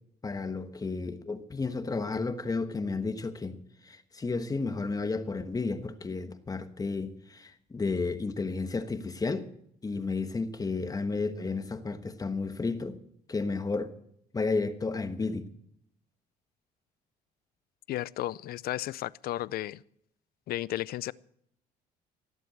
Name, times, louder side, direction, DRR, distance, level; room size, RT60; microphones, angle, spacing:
voice 1, 0.2-3.6 3.8-9.5 9.8-13.0 13.3-14.0 14.3-15.5, left 3 dB, 20° left, 1.2 m, -32 dB
voice 2, 17.9-19.8 20.5-21.1, left 14 dB, 65° left, 0.5 m, -33 dB
17.5 x 7.8 x 7.8 m
cardioid pair, 110°, 17 cm